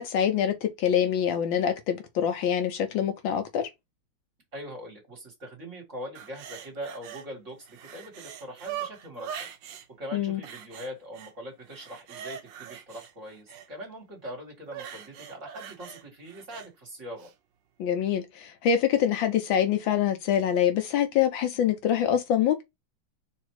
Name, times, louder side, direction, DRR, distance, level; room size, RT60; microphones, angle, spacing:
voice 1, 0.0-3.7 10.1-10.4 17.8-22.6, left 9 dB, 75° left, 1.4 m, -25 dB
voice 2, 4.5-9.5 10.0-17.3, equal, 35° right, 2.1 m, -42 dB
sound 1, 6.1-7.3 7.6-9.9 10.4-11.3 11.7-13.7 14.7-16.7 17.2-17.3, right 9 dB, 70° right, 1.3 m, -41 dB
4.1 x 2.8 x 4.6 m
omnidirectional pair, 2.3 m